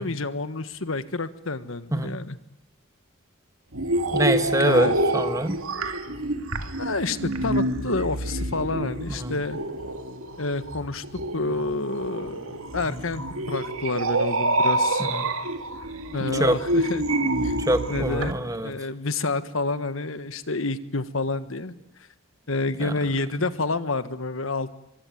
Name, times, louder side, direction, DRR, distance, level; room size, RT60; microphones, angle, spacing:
voice 1, 0.0-2.4 4.6-5.0 6.8-9.6 10.4-11.0 11.3-15.1 16.1-17.0 17.4-17.5 17.9-18.3 18.6-21.7 22.5-24.7, left 3 dB, 75° left, 12 dB, 1.5 m, -29 dB
sound 1, 3.7-18.3, right 1 dB, 80° right, 2.3 m, -27 dB
voice 2, 4.1-5.6 9.2-9.3 15.1-15.2 16.4-16.6 17.6-18.7 22.8-22.9 23.4-23.5, right 1 dB, 15° right, 9 dB, 1.5 m, -24 dB
24.0 x 22.0 x 9.3 m, 0.82 s
head